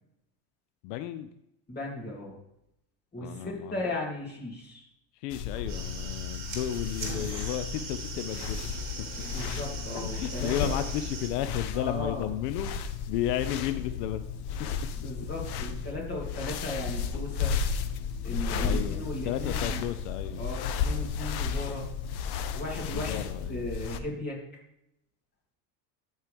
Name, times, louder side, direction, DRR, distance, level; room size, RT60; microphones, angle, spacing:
voice 1, 0.8-1.3 3.2-3.8 5.2-8.8 10.1-14.2 14.6-14.7 18.6-20.4 22.9-23.7, left 12 dB, 85° left, 10 dB, 0.7 m, -33 dB
voice 2, 1.7-2.4 3.1-4.9 9.2-10.7 11.7-12.3 15.0-17.5 18.2-19.8 20.4-21.9 22.5-24.4, left 2 dB, 20° left, -2 dB, 3.0 m, -36 dB
sound 1, 5.3-24.0, left 6 dB, 55° left, 0.8 m, -34 dB
Kitchen Hob - Flame Ignition, 5.6-11.3, right 4 dB, 35° right, 2.3 m, -40 dB
13.5 x 4.6 x 3.5 m, 0.81 s
supercardioid pair, 120°, 47 cm